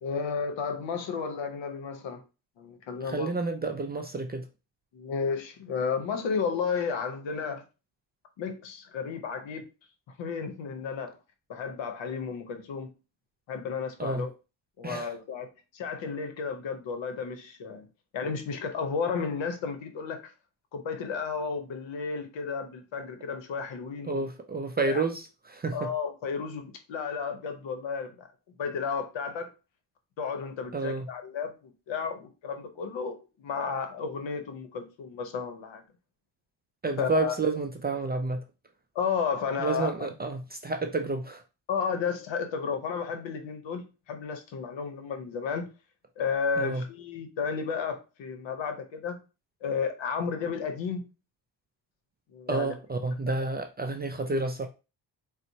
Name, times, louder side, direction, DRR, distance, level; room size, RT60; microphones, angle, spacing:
voice 1, 0.0-2.2 2.6-3.3 4.9-7.6 8.4-9.6 10.2-11.2 11.5-12.9 13.5-14.3 14.8-17.9 18.1-20.3 20.7-24.2 24.8-25.0 25.7-28.3 28.6-29.5 30.2-35.8 37.0-37.4 38.9-39.9 41.7-45.7 46.2-49.2 49.6-51.0 52.3-52.7, left 5 dB, 75° left, 0.8 m, -32 dB
voice 2, 3.0-4.5 14.0-14.3 14.8-15.1 24.1-25.9 30.7-31.1 36.8-38.4 39.6-41.4 46.6-46.8 52.5-54.7, right 3 dB, 25° right, 0.3 m, -30 dB
4.1 x 2.1 x 2.7 m
cardioid pair, 80°, 45 cm